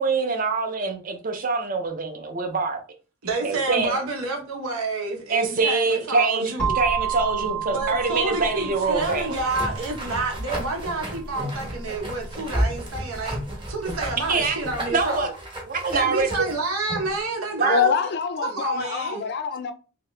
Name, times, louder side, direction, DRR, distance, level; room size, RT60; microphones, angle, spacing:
voice 1, 0.0-2.8 3.4-4.0 5.3-9.4 14.3-14.6 14.9-15.3 15.7-16.3 17.6-17.8, right 4 dB, 40° right, 0.5 m, -24 dB
voice 2, 3.2-6.7 7.6-13.4 13.7-15.3 15.9-17.9 18.4-19.2, right 3 dB, 90° right, 1.0 m, -29 dB
sound 1, 6.6-14.4, right 6 dB, 5° left, 0.7 m, -32 dB
sound 2, 9.0-17.2, equal, 25° right, 0.9 m, -32 dB
voice 3, 17.7-19.7, left 6 dB, 50° left, 0.4 m, -25 dB
2.8 x 2.8 x 3.2 m
head